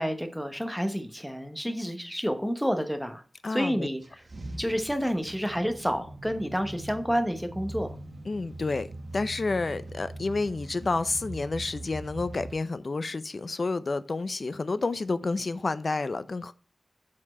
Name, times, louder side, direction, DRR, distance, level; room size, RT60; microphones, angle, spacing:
voice 1, 0.0-3.2 3.5-4.0 4.6-7.9, equal, ahead, 1.0 m, -29 dB
voice 2, 3.4-3.9 8.3-8.9 9.1-16.5, left 3 dB, 50° left, 0.6 m, -30 dB
sound 1, 4.0-12.5, right 1 dB, 50° right, 1.1 m, -42 dB
7.3 x 4.4 x 4.3 m
wide cardioid pair, 90°, 0 cm